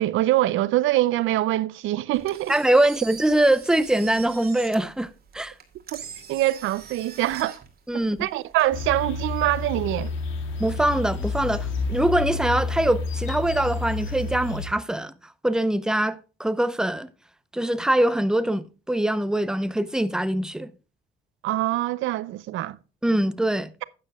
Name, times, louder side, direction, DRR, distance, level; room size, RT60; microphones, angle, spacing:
voice 1, 0.0-2.5 5.9-6.0 6.3-7.6 7.9-10.1 21.4-22.8, right 15 dB, 90° right, 0.6 m, -24 dB
Engine, 2.1-9.4, right 6 dB, 50° right, 2.5 m, -44 dB
voice 2, 2.5-5.5 7.9-8.2 10.6-15.1 15.4-17.1 17.5-20.7 23.0-23.7, right 1 dB, 5° right, 0.7 m, -23 dB
sound 1, 8.7-14.7, left 4 dB, 90° left, 2.0 m, -30 dB
12.0 x 9.4 x 2.3 m
cardioid pair, 90°, 20 cm